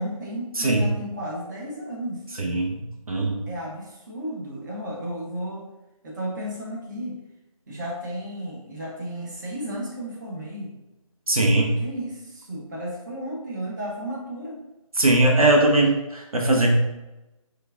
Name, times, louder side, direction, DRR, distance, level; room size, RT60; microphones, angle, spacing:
voice 1, 0.0-2.2 3.5-5.7 6.0-7.2 7.7-10.8 11.8-14.6, equal, 35° right, -4 dB, 0.8 m, -33 dB
voice 2, 2.4-2.8 3.1-3.4 11.3-11.8 15.0-16.8, right 2 dB, 85° right, 1 dB, 0.7 m, -20 dB
4.6 x 2.3 x 2.3 m, 0.99 s
figure-of-eight pair, 155°, 18 cm